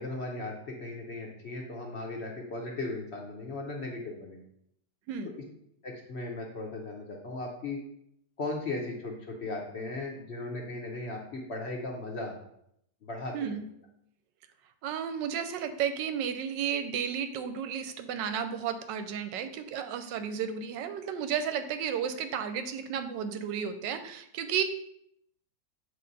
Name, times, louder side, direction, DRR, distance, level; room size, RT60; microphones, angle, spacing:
voice 1, 0.0-4.4 5.8-7.8 8.4-12.4 13.0-13.3, left 2 dB, 65° left, 0 dB, 0.6 m, -37 dB
voice 2, 14.8-24.6, right 8 dB, 75° right, 9 dB, 1.1 m, -33 dB
7.7 x 3.2 x 4.0 m, 0.74 s
omnidirectional pair, 2.2 m